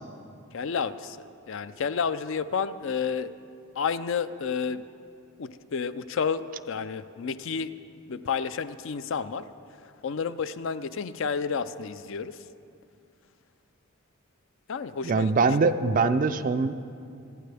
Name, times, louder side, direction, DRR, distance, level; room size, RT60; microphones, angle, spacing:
voice 1, 0.5-1.2 1.5-3.3 3.8-4.8 5.4-7.7 8.1-9.5 10.0-12.4 14.7-15.6, left 6 dB, 60° left, 13 dB, 0.4 m, -30 dB
voice 2, 15.0-16.7, right 4 dB, 35° right, 12 dB, 0.4 m, -23 dB
26.5 x 9.2 x 3.4 m, 2.5 s
head